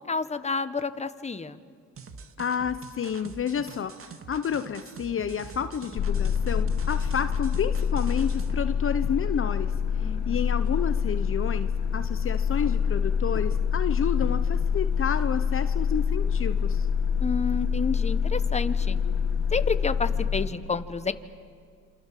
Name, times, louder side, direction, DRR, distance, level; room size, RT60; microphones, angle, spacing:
voice 1, 0.1-1.6 10.0-10.4 17.2-19.0 19.5-21.1, left 4 dB, 20° left, 11 dB, 1.3 m, -29 dB
sound 1, 2.0-8.7, right 4 dB, 45° right, 2.0 m, -44 dB
voice 2, 2.4-16.9, left 7 dB, 45° left, 11 dB, 0.9 m, -30 dB
sound 2, 6.0-20.5, left 7 dB, 80° left, 2.1 m, -26 dB
27.5 x 25.5 x 7.7 m, 2.2 s
cardioid pair, 90°, 30 cm